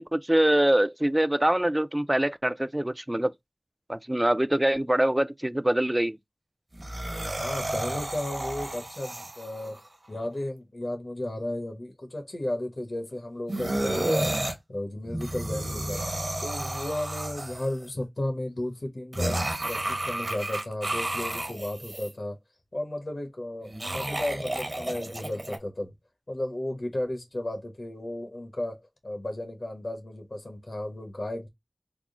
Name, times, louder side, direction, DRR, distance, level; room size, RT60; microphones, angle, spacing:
voice 1, 0.0-3.3 3.9-6.2, right 1 dB, 20° right, 0.3 m, -24 dB
sound 1, 6.7-9.8 13.5-14.5 15.0-17.8 19.1-22.1 23.6-25.6, right 1 dB, 50° right, 0.9 m, -31 dB
voice 2, 7.4-9.8 10.1-14.3 14.7-16.0 16.4-19.4 19.7-22.4 22.7-25.9 26.3-31.5, left 1 dB, 70° left, 1.0 m, -34 dB
3.5 x 2.0 x 3.6 m
wide cardioid pair, 50°, 0 cm